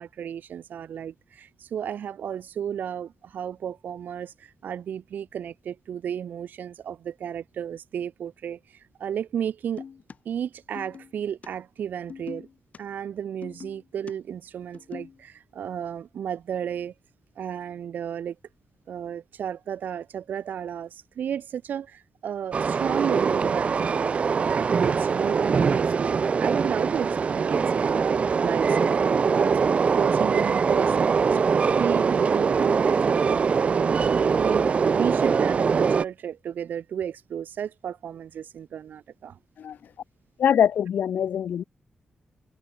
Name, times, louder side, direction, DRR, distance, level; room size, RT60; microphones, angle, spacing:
voice 1, 0.0-9.8 10.3-12.5 12.8-16.9 17.4-18.4 18.9-31.4 31.8-39.4, right 9 dB, 85° right, 1.9 m, -33 dB
sound 1, 9.8-10.2 10.7-11.1 11.4-11.5 12.1-12.8 13.4-14.1 14.6-15.2, left 6 dB, 55° left, 7.0 m, -41 dB
Train, 22.5-36.0, right 5 dB, 45° right, 0.7 m, -22 dB
voice 2, 40.4-41.6, left 9 dB, 85° left, 2.2 m, -23 dB
wide cardioid pair, 140°, 3 cm